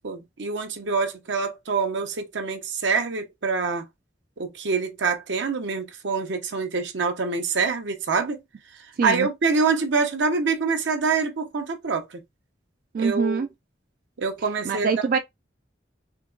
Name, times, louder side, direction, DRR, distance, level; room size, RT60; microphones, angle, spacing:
voice 1, 0.0-3.8 4.4-8.4 9.0-12.2 13.0-13.4 14.2-14.9, right 4 dB, 80° right, 0.7 m, -25 dB
voice 2, 12.9-13.5 14.6-15.2, right 5 dB, 50° right, 0.3 m, -24 dB
3.6 x 2.8 x 2.3 m
head